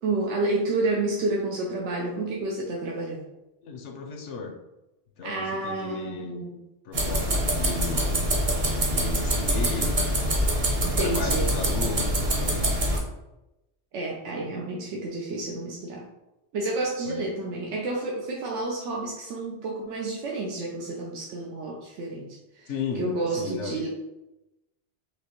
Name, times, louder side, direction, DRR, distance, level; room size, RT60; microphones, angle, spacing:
voice 1, 0.0-3.2 5.2-6.6 10.8-11.5 13.9-16.1 16.5-22.7 23.0-23.9, right 2 dB, 90° right, -3 dB, 1.0 m, -30 dB
voice 2, 3.6-4.5 5.2-6.5 6.8-8.2 8.8-10.4 10.8-12.6 17.1-17.3 22.7-23.9, left 4 dB, 85° left, 3 dB, 1.0 m, -35 dB
sound 1, 6.9-13.0, right 1 dB, 45° right, 1.0 m, -25 dB
4.9 x 3.0 x 3.0 m, 0.96 s
omnidirectional pair, 1.2 m